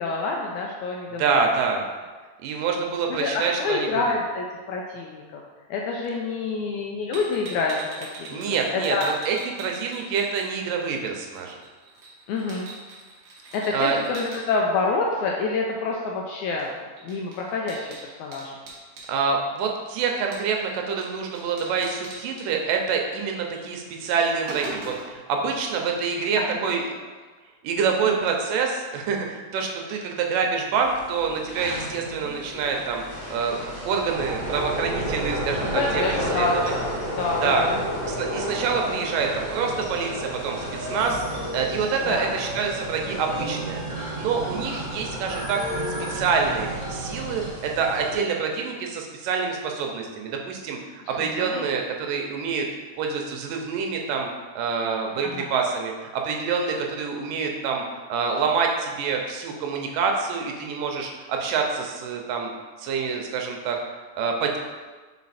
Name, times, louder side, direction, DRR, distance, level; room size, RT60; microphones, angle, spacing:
voice 1, 0.0-1.4 3.1-5.4 5.7-8.4 8.7-9.1 12.3-12.7 13.5-16.7 17.0-18.5 26.4-26.5 28.1-28.2 35.7-36.9 37.2-37.8 42.1-42.3 51.2-51.7 55.2-55.5, left 3 dB, 80° left, -1 dB, 1.7 m, -27 dB
voice 2, 1.2-1.8 2.4-4.2 8.3-11.6 13.7-14.0 19.1-26.8 27.6-33.6 33.9-36.0 36.3-36.7 37.4-37.7 38.1-41.2 41.5-43.8 44.2-45.6 46.1-52.7 53.0-54.3 54.6-57.8 58.1-62.5 62.8-63.8 64.2-64.6, right 5 dB, 80° right, 2 dB, 2.3 m, -26 dB
sound 1, 7.1-10.9 11.1-14.4 16.6-16.7 17.0-19.1 20.3-20.7 21.0-21.1 21.3-22.4 23.5-23.7 24.0-25.2, right 3 dB, 60° right, 1.7 m, -40 dB
sound 2, 30.8-48.1, left 1 dB, 65° left, 0.7 m, -35 dB
sound 3, 34.0-47.5, right 1 dB, 30° right, 1.1 m, -33 dB
5.1 x 4.6 x 4.1 m, 1.4 s
omnidirectional pair, 3.8 m